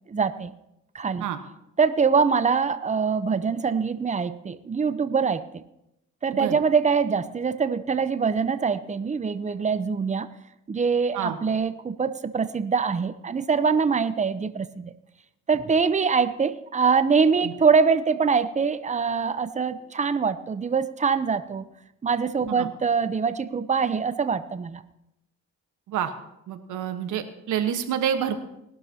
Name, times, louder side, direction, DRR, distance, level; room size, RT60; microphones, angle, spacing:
voice 1, 0.1-0.5 0.9-1.3 1.8-5.4 6.2-10.3 10.7-14.9 15.5-21.7 22.0-24.8, right 5 dB, 25° right, 12 dB, 0.8 m, -24 dB
voice 2, 26.5-28.4, right 9 dB, 80° right, 7 dB, 1.4 m, -28 dB
20.0 x 12.0 x 2.9 m, 0.84 s
cardioid pair, 90°, 30 cm